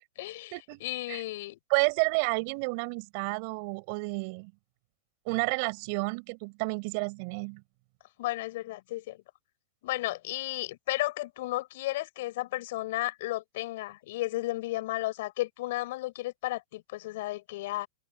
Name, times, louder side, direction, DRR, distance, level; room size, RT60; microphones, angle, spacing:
voice 1, 0.2-0.5 0.8-1.6 8.2-9.2 9.8-17.9, left 17 dB, 55° left, 7.6 m, -33 dB
voice 2, 1.7-4.5 5.3-7.6, right 32 dB, 45° right, 7.8 m, -30 dB
supercardioid pair, 150°, 0 cm